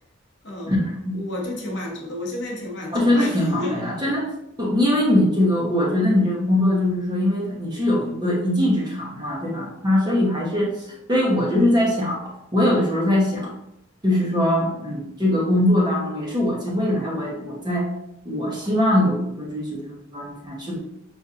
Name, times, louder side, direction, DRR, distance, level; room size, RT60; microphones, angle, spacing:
voice 1, 0.4-0.9 1.1-3.9, left 1 dB, 55° left, -2 dB, 0.9 m, -31 dB
voice 2, 2.9-4.3 4.6-12.2 12.5-13.5 14.0-17.9 18.2-20.8, left 1 dB, 20° right, -3 dB, 0.8 m, -22 dB
5.5 x 2.6 x 2.5 m, 0.80 s
head